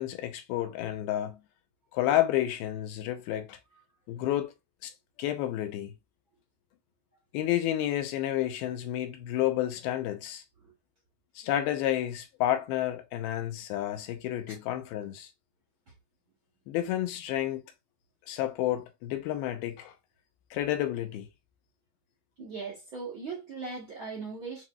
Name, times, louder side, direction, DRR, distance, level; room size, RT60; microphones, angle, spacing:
voice 1, 0.0-1.4 1.9-3.6 4.1-4.5 4.8-4.9 5.2-5.9 7.3-10.4 11.4-15.3 16.7-17.6 18.3-19.9 20.5-21.3, left 13 dB, 85° left, 2.6 m, -30 dB
voice 2, 22.4-24.6, right 4 dB, 80° right, 1.1 m, -39 dB
7.7 x 2.9 x 2.3 m
omnidirectional pair, 4.2 m